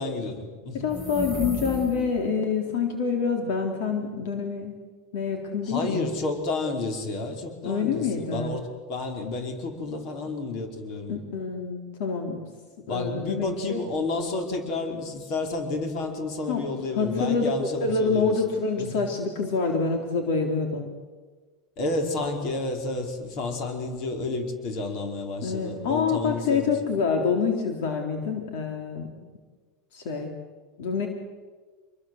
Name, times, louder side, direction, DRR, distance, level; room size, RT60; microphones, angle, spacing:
voice 1, 0.0-0.9 5.6-11.2 12.9-18.4 18.8-19.0 21.8-26.8, left 3 dB, 50° left, 4 dB, 5.2 m, -31 dB
voice 2, 0.7-4.7 5.1-6.1 7.6-8.6 11.1-12.4 12.9-13.8 16.5-16.6 17.0-17.5 17.8-20.9 25.4-29.1 29.9-30.3 30.8-31.1, left 5 dB, 70° left, 3 dB, 3.9 m, -26 dB
sound 1, 0.8-2.3, equal, 5° left, 1.8 m, -34 dB
28.0 x 22.0 x 8.1 m, 1.4 s
supercardioid pair, 145°, 0 cm